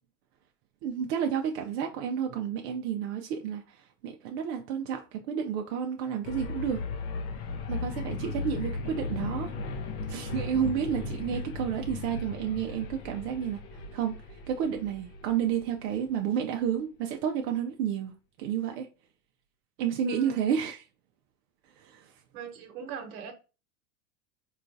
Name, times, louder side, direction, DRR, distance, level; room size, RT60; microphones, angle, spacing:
voice 1, 0.8-6.8 7.7-9.5 10.1-13.6 13.9-14.2 14.5-18.9 19.8-20.8 21.8-22.1, right 8 dB, 45° right, 0.5 m, -31 dB
sound 1, 6.2-16.2, left 3 dB, 35° left, 0.5 m, -36 dB
voice 2, 20.0-20.4 22.3-23.3, right 7 dB, 60° right, 1.0 m, -40 dB
3.6 x 2.4 x 2.5 m
hypercardioid pair, 115°, 48 cm